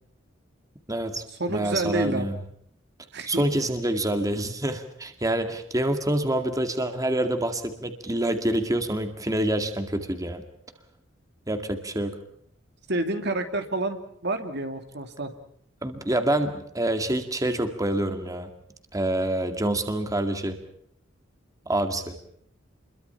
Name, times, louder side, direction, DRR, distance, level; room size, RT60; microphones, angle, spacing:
voice 1, 0.9-1.2 1.5-2.4 3.3-10.4 11.5-12.2 15.8-18.5 18.9-20.6 21.7-22.2, right 1 dB, 20° right, 7 dB, 2.1 m, -26 dB
voice 2, 1.4-2.4 3.1-3.4 12.9-14.0 14.2-15.3, right 2 dB, 60° right, 7 dB, 2.8 m, -28 dB
28.5 x 22.5 x 5.8 m, 0.68 s
head